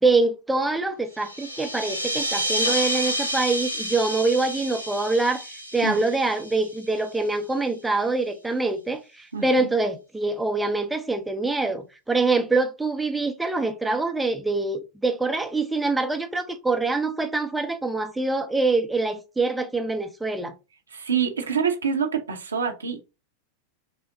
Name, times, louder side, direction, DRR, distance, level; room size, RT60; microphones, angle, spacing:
voice 1, 0.0-20.5, right 3 dB, 5° right, 0.5 m, -25 dB
sound 1, 1.2-7.3, equal, 85° left, 0.7 m, -29 dB
voice 2, 9.3-9.7 20.9-23.0, right 6 dB, 75° right, 0.8 m, -26 dB
5.3 x 2.1 x 3.7 m
figure-of-eight pair, 90°, 0 cm